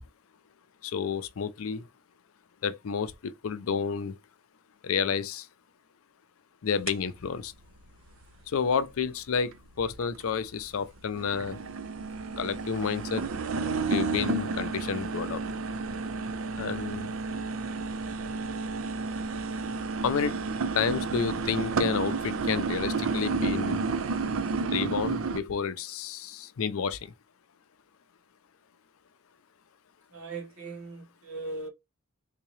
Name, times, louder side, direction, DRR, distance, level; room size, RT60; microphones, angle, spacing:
voice 1, 0.8-1.8 2.6-4.2 4.8-5.5 6.6-7.5 8.5-11.6 12.4-13.2 13.8-15.4 16.6-17.1 20.0-20.4 20.7-23.8 24.7-27.1, left 6 dB, 75° left, 0.5 m, -30 dB
sound 1, 6.9-7.0 7.5-7.6 8.2-8.3 9.5-9.6 10.0-10.6 11.0-25.4, right 4 dB, 70° right, 0.5 m, -31 dB
voice 2, 30.1-31.7, right 3 dB, 90° right, 1.8 m, -39 dB
3.6 x 2.8 x 3.1 m
head